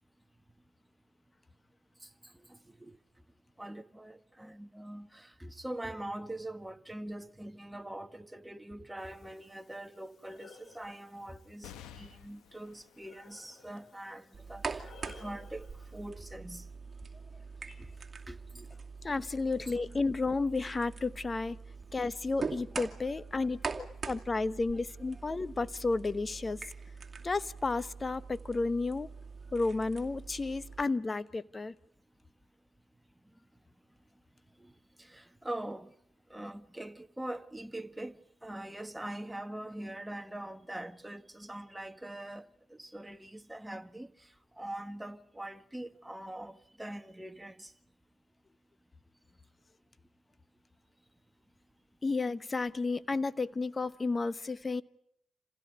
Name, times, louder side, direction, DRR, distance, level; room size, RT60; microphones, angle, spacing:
voice 1, 2.0-3.0 3.6-16.7 18.3-18.7 19.2-19.3 19.6-19.7 22.8-23.5 25.1-25.2 34.6-34.7 35.0-35.9 36.3-47.7, right 1 dB, 10° right, 1.6 m, -43 dB
Breathing, 9.0-16.1, left 3 dB, 55° left, 3.1 m, -59 dB
sound 1, 11.6-18.5 19.1-19.2 20.3-20.9, left 9 dB, 85° left, 1.4 m, -57 dB
sound 2, 14.3-30.8, right 4 dB, 35° right, 2.5 m, -43 dB
voice 2, 19.0-21.6 21.9-26.7 27.2-29.1 29.5-31.7 52.0-54.8, left 3 dB, 35° left, 1.1 m, -32 dB
28.0 x 16.0 x 9.6 m
supercardioid pair, 50°, 0 cm